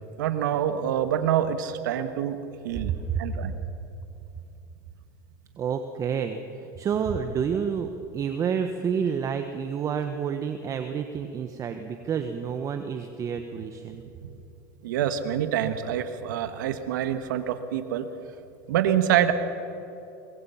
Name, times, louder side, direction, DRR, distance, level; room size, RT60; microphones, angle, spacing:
voice 1, 0.2-2.4 2.6-2.9 3.2-3.5 14.8-18.1 18.7-19.3, right 10 dB, 85° right, 9 dB, 1.6 m, -26 dB
voice 2, 2.9-3.2 5.6-14.0, right 7 dB, 35° right, 7 dB, 1.3 m, -29 dB
23.5 x 20.5 x 5.8 m, 2.9 s
supercardioid pair, 115°, 10 cm